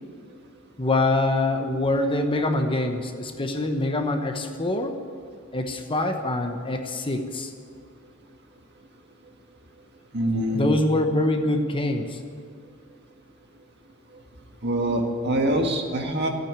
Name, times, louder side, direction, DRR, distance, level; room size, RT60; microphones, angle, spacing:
voice 1, 0.8-4.9 5.5-7.5 10.5-12.2, left 2 dB, 25° left, 5 dB, 1.0 m, -24 dB
voice 2, 10.1-10.7 14.6-16.3, right 1 dB, 50° right, 2 dB, 1.8 m, -24 dB
14.0 x 9.0 x 9.7 m, 2.2 s
head